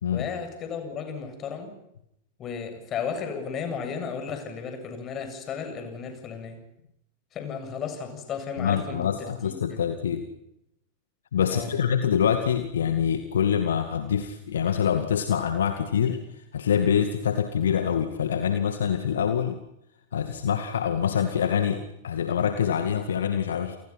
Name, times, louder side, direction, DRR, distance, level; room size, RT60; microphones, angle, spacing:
voice 1, 0.1-1.7 2.4-6.6 7.3-9.8 11.5-11.8, left 6 dB, 30° left, 6 dB, 7.8 m, -34 dB
voice 2, 8.6-10.3 11.3-16.2 16.5-19.6 20.1-23.8, left 8 dB, 65° left, 8 dB, 2.2 m, -25 dB
30.0 x 29.5 x 6.0 m, 0.80 s
figure-of-eight pair, 90°, 0 cm